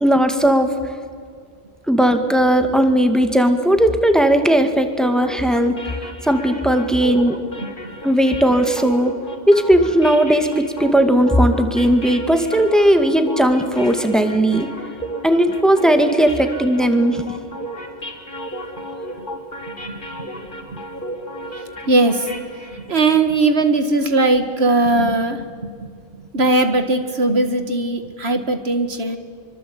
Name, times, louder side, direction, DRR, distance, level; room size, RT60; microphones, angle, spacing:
voice 1, 0.0-0.7 1.9-5.8 6.2-7.4 8.0-9.1 9.5-14.7 15.2-17.2, right 1 dB, ahead, 7 dB, 2.1 m, -16 dB
sound 1, 5.0-22.9, right 1 dB, 55° left, 3.9 m, -34 dB
voice 2, 19.7-20.0 20.7-20.8 21.9-22.3 22.7-25.9 26.3-29.2, right 2 dB, 80° right, 8 dB, 2.2 m, -19 dB
25.5 x 25.0 x 8.7 m, 2.1 s
omnidirectional pair, 1.0 m